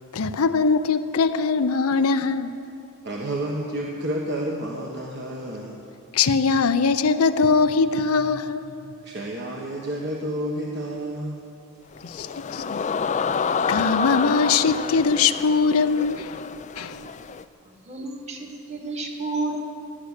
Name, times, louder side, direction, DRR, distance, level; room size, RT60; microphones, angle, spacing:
voice 1, 0.1-2.5 6.1-8.7 12.0-12.3 12.5-12.6 13.7-16.4 16.8-17.0, left 4 dB, 75° left, 0.6 m, -21 dB
voice 2, 3.0-5.8 9.0-11.4, right 1 dB, 50° right, 1.4 m, -30 dB
sound 1, 11.9-17.4, left 6 dB, 30° left, 0.4 m, -28 dB
voice 3, 17.6-19.6, right 2 dB, 30° right, 1.7 m, -31 dB
16.5 x 12.0 x 6.7 m
head